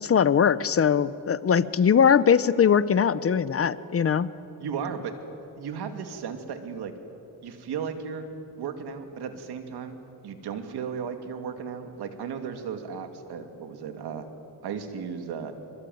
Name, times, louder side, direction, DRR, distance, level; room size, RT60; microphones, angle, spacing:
voice 1, 0.0-4.3, left 7 dB, 35° left, 17 dB, 0.7 m, -21 dB
voice 2, 4.6-5.1 5.6-6.9 7.4-8.3 8.6-10.0 10.2-14.3 14.6-15.5, right 6 dB, 85° right, 7 dB, 2.4 m, -35 dB
24.5 x 24.0 x 9.3 m, 2.9 s
cardioid pair, 130°, 38 cm